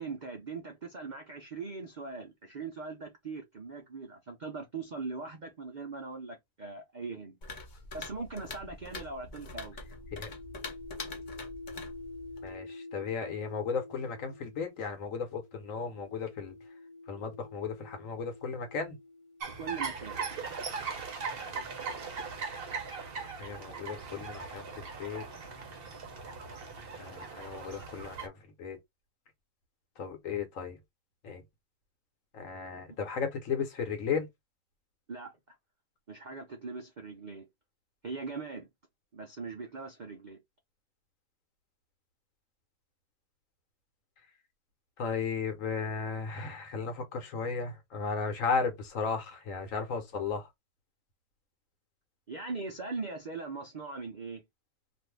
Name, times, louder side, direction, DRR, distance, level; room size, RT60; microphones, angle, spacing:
voice 1, 0.0-7.4 7.9-9.8 19.6-20.2 35.1-35.6 36.1-37.4 38.0-38.7 39.1-40.4 52.3-54.4, right 4 dB, 80° right, 0.4 m, -40 dB
sound 1, 7.4-12.6, left 3 dB, 45° left, 0.7 m, -44 dB
sound 2, 9.7-20.1 21.0-24.7, left 2 dB, 85° left, 1.3 m, -49 dB
voice 2, 12.4-16.5 17.1-19.0 23.4-25.2 26.9-28.3 28.6-28.8 30.0-30.8 31.2-31.4 32.3-34.3 45.0-50.5, left 5 dB, 60° left, 1.1 m, -35 dB
sound 3, 19.4-28.3, right 5 dB, 50° right, 0.7 m, -39 dB
2.6 x 2.6 x 3.2 m
omnidirectional pair, 1.8 m